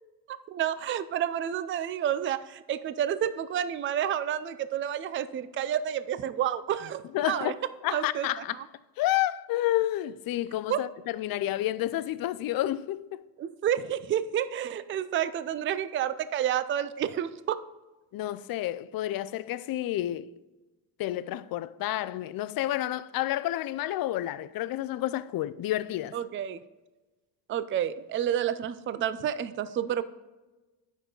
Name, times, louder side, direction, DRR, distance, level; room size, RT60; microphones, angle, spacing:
voice 1, 0.3-7.5 7.9-8.3 8.5-8.6 10.7-10.8 13.4-17.6 26.1-26.6 27.5-30.0, right 10 dB, 30° right, 0.4 m, -30 dB
voice 2, 7.1-8.6 9.0-13.3 18.1-20.3 21.0-26.2, left 14 dB, 55° left, 0.5 m, -30 dB
9.0 x 6.1 x 3.9 m
cardioid pair, 110°, 45 cm